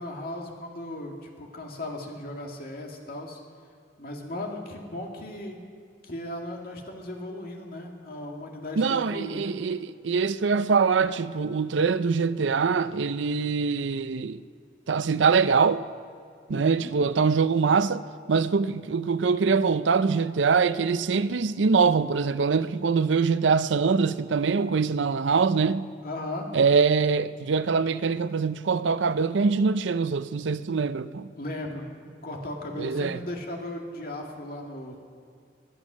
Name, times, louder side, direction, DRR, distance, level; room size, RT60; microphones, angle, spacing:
voice 1, 0.0-3.4 4.0-5.7 6.0-9.7 16.5-16.9 26.0-26.5 31.3-35.0, left 1 dB, 55° left, 2.2 m, -37 dB
voice 2, 8.8-14.4 14.9-15.8 16.5-18.0 18.3-25.8 26.5-31.3 32.8-33.2, right 5 dB, 85° right, 0.5 m, -23 dB
21.0 x 11.0 x 6.2 m
head